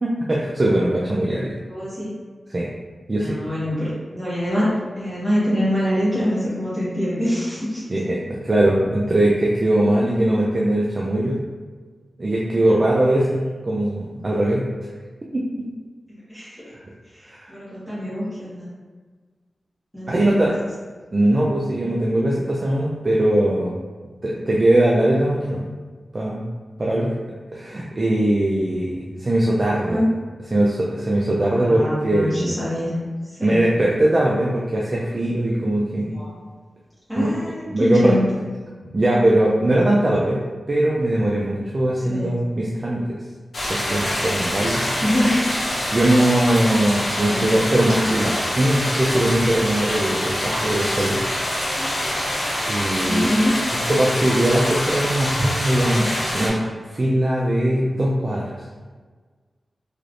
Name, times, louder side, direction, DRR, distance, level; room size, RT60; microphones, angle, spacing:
voice 1, 0.0-1.6 2.5-2.7 3.1-3.4 7.9-11.4 12.2-14.7 15.3-15.7 17.3-17.5 20.1-20.5 21.1-23.8 24.2-25.6 26.1-26.5 26.8-27.1 27.5-30.0 30.5-32.6 33.4-36.1 37.2-37.4 37.7-38.1 38.9-40.4 40.7-43.0 43.7-44.9 45.9-51.2 52.7-53.3 53.9-56.1 56.3-56.6 56.9-58.5, right 1 dB, 40° right, -4 dB, 0.4 m, -20 dB
voice 2, 1.7-2.1 3.1-7.8 16.1-16.6 17.1-18.7 19.9-20.5 29.8-30.2 31.5-33.0 33.2-33.7 36.0-36.3 37.1-38.4 42.1-42.4 45.0-45.5 47.3-47.5 53.1-53.7, equal, 5° left, -11 dB, 1.5 m, -24 dB
sound 1, 43.5-56.5, equal, 65° left, 1.3 m, -25 dB
3.2 x 2.9 x 2.6 m, 1.5 s
cardioid pair, 55°, 0 cm